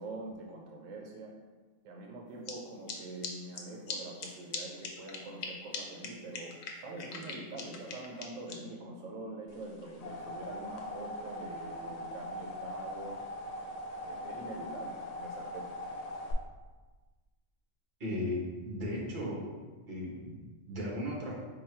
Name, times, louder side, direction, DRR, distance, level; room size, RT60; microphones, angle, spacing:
voice 1, 0.0-1.3 1.8-13.1 14.0-15.7, right 2 dB, 85° right, 0 dB, 1.0 m, -44 dB
sound 1, 2.5-2.6 2.9-3.0 3.2-3.3 3.6-3.7 3.9-4.0 4.2-4.3 4.5-4.6 4.8-5.5 5.7-5.8 6.0-6.1 6.3-8.5, left 6 dB, 65° left, 0.8 m, -39 dB
sound 2, 9.6-16.3, left 1 dB, 85° left, 0.3 m, -41 dB
voice 2, 18.0-19.5 19.9-21.3, left 1 dB, 55° right, -3 dB, 1.2 m, -36 dB
4.1 x 2.2 x 4.3 m, 1.3 s
omnidirectional pair, 1.3 m